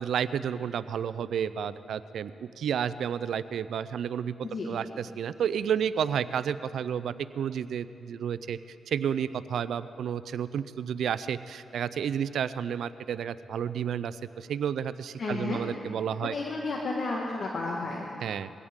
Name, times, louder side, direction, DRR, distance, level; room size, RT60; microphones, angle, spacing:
voice 1, 0.0-4.3 4.7-8.6 8.9-16.3 18.2-18.5, right 8 dB, 75° right, 14 dB, 0.5 m, -31 dB
voice 2, 4.4-4.8 15.2-15.6 16.2-18.1, left 3 dB, 60° left, -2 dB, 1.8 m, -32 dB
22.0 x 17.0 x 3.7 m, 2.6 s
cardioid pair, 80°, 0 cm